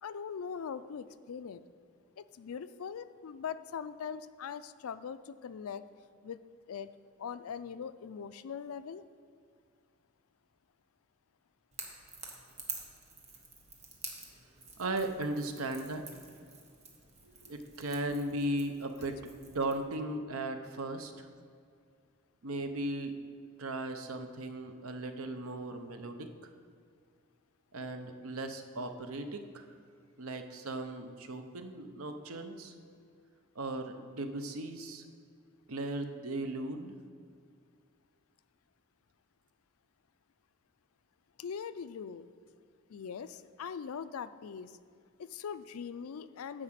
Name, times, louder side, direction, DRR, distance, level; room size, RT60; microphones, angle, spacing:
voice 1, 0.0-1.6 2.2-5.8 6.2-6.4 6.7-6.9 7.2-9.1 41.4-42.3 42.9-44.8 45.2-46.6, left 7 dB, 85° left, 13 dB, 0.4 m, -41 dB
Crackle / Crack, 11.7-19.8, right 4 dB, 30° right, 1.2 m, -48 dB
voice 2, 14.8-16.0 17.4-21.3 22.4-23.2 23.6-26.3 27.7-29.6 30.2-32.7 33.6-35.0 35.7-37.0, right 2 dB, 90° right, 7 dB, 0.8 m, -37 dB
9.9 x 4.9 x 7.5 m, 2.1 s
head